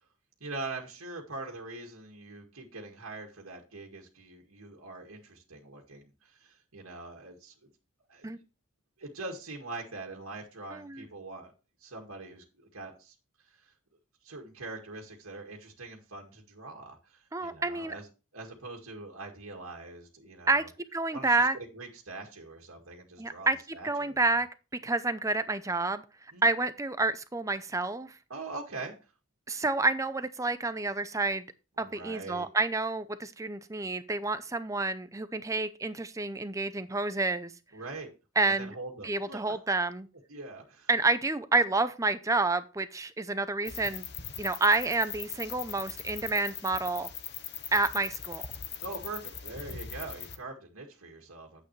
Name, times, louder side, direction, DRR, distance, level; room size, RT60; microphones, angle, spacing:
voice 1, 0.4-7.7 8.1-8.3 9.0-11.5 11.8-13.1 13.5-13.7 14.2-18.1 18.3-20.7 21.1-24.2 26.3-26.5 28.3-28.9 31.8-32.5 37.7-38.1 38.5-39.6 40.3-40.9 48.8-51.6, right 3 dB, 85° right, 1 dB, 2.0 m, -43 dB
voice 2, 10.7-11.0 17.3-17.9 20.5-20.6 20.9-21.6 23.2-23.6 23.8-24.5 24.8-26.0 26.4-28.2 29.5-31.5 31.8-37.5 38.4-38.7 39.0-40.1 40.9-44.0 44.4-47.1 47.7-48.5, right 3 dB, 15° right, 12 dB, 0.5 m, -29 dB
sound 1, 43.6-50.4, left 9 dB, 50° left, 1.0 m, -40 dB
9.5 x 8.2 x 3.2 m, 0.31 s
head